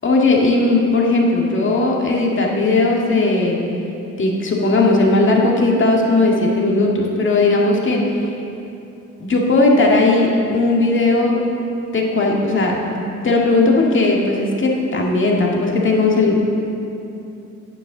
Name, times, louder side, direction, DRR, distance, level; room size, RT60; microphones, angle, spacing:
voice 1, 0.0-3.6 4.2-8.1 9.2-11.4 11.9-16.4, left 2 dB, 40° left, -1 dB, 1.9 m, -17 dB
8.8 x 7.3 x 7.1 m, 2.8 s
cardioid pair, 90°, 30 cm